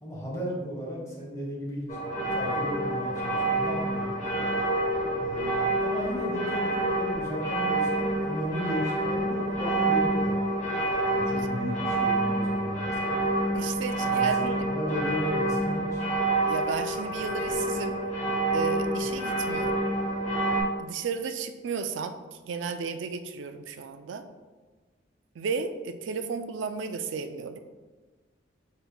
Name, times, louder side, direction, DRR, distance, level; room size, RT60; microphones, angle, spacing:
voice 1, 0.0-4.5 5.2-10.5 11.1-13.2 14.0-16.0, equal, 15° left, -4 dB, 1.2 m, -35 dB
sound 1, 1.9-20.6, right 2 dB, 35° left, 1.0 m, -28 dB
voice 2, 13.5-14.7 16.5-18.0 18.5-19.8 20.8-22.2 22.4-24.3 25.4-27.6, right 5 dB, 70° right, 9 dB, 0.3 m, -33 dB
5.1 x 4.3 x 2.3 m, 1.3 s
head